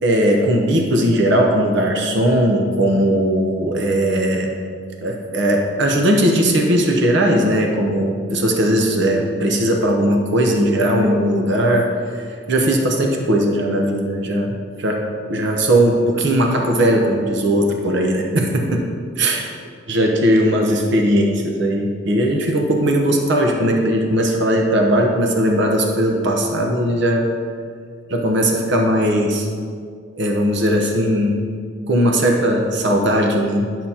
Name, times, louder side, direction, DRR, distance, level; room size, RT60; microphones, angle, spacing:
voice 1, 0.0-4.5 5.0-11.9 12.5-15.0 15.3-18.8 19.2-19.5 19.9-27.3 28.1-29.5 30.2-31.4 31.9-33.9, right 1 dB, 60° right, 1 dB, 0.8 m, -18 dB
11.0 x 5.9 x 2.8 m, 2.1 s
head